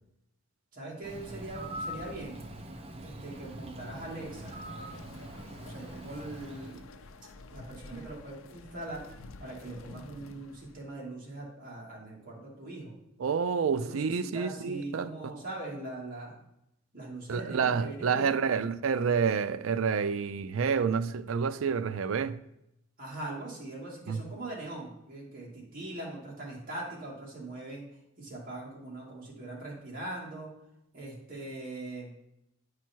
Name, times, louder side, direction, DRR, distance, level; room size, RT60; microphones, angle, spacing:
voice 1, 0.7-2.4 3.0-4.6 5.4-6.9 7.5-9.1 9.4-12.9 13.8-16.4 16.9-18.4 23.0-27.8 28.2-30.5 30.9-32.1, right 2 dB, 45° right, 2.5 m, -41 dB
Bird, 1.0-6.9, right 1 dB, 30° right, 0.8 m, -43 dB
sound 1, 4.2-11.0, left 3 dB, 85° left, 0.6 m, -50 dB
voice 2, 13.2-15.1 17.3-22.4 24.1-24.2, right 6 dB, 80° right, 0.4 m, -28 dB
9.1 x 4.8 x 4.5 m
head